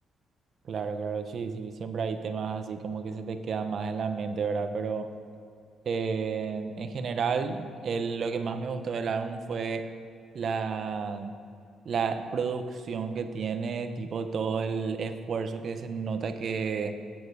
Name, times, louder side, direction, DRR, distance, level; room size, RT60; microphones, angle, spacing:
voice 1, 0.7-5.2 5.9-9.9 10.3-11.4 11.8-17.0, right 5 dB, 55° right, 9 dB, 0.9 m, -31 dB
15.0 x 9.1 x 4.8 m, 2.4 s
cardioid pair, 90°, 0 cm